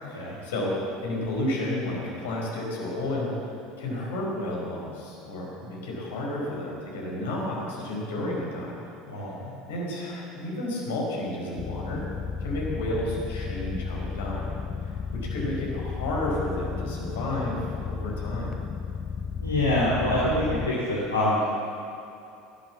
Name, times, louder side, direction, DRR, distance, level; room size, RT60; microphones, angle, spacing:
voice 1, 0.0-3.3 3.8-8.7 9.7-12.0 12.4-14.5 14.8-14.9 15.3-18.6, left 1 dB, 70° left, -3 dB, 4.8 m, -31 dB
voice 2, 9.1-9.5 19.4-20.4 20.9-21.5, left 1 dB, 85° left, -7 dB, 2.6 m, -25 dB
sound 1, 11.6-20.7, left 5 dB, 40° left, 0.9 m, -33 dB
18.5 x 10.5 x 7.3 m, 2.6 s
figure-of-eight pair, 70°, 0 cm